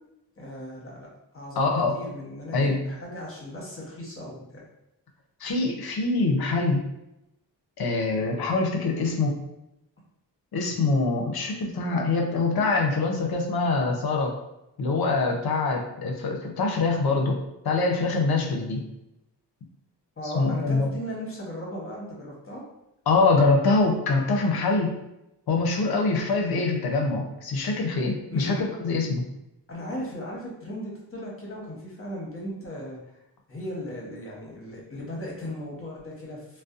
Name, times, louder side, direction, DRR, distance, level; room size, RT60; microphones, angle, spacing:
voice 1, 0.4-4.6 20.2-22.6 28.3-28.6 29.7-33.0 33.5-36.6, left 1 dB, 30° left, -3 dB, 0.9 m, -37 dB
voice 2, 1.6-2.0 2.5-2.8 5.4-6.8 7.8-9.4 10.5-14.4 14.8-17.4 17.6-18.8 20.2-20.9 23.1-24.9 25.5-29.3, left 3 dB, 55° left, 1 dB, 0.6 m, -24 dB
2.6 x 2.1 x 2.4 m, 0.88 s
cardioid pair, 65°, 44 cm